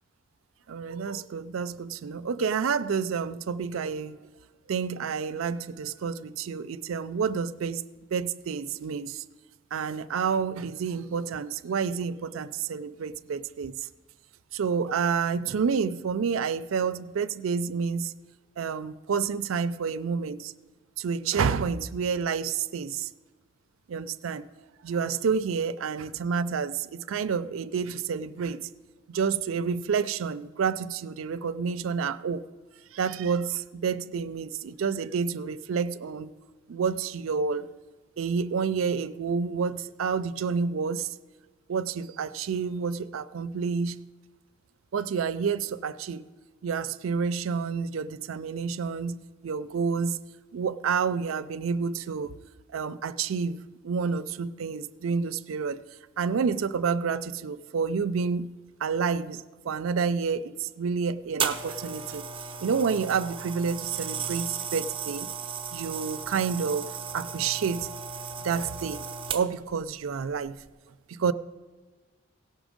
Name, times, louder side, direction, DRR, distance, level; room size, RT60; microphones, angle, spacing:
voice 1, 0.7-4.2 4.7-7.8 8.1-9.2 9.7-13.8 14.5-18.1 18.6-20.5 21.0-23.1 23.9-24.5 24.8-28.6 29.1-32.4 32.9-36.3 36.7-37.7 38.2-41.1 41.7-44.0 44.9-46.2 46.6-50.2 50.5-52.3 52.7-55.8 56.2-58.6 58.8-62.2 62.6-65.3 65.7-67.9 68.4-69.0 69.3-70.6 71.1-71.3, right 6 dB, 90° right, 12 dB, 0.4 m, -29 dB
sound 1, 61.4-69.7 70.5-70.7, right 6 dB, 25° right, 0.6 m, -35 dB
17.0 x 6.1 x 5.1 m, 1.3 s
head